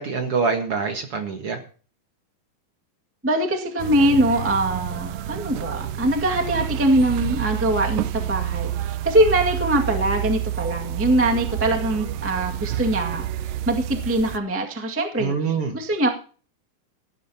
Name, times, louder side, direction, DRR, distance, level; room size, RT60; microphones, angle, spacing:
voice 1, 0.0-1.6 15.2-15.7, right 5 dB, 50° right, 5 dB, 1.9 m, -25 dB
voice 2, 3.2-16.1, right 1 dB, 10° right, 1 dB, 0.6 m, -22 dB
sound 1, 3.8-14.4, right 12 dB, 80° right, 2.2 m, -29 dB
18.0 x 13.5 x 2.9 m, 0.39 s
omnidirectional pair, 4.2 m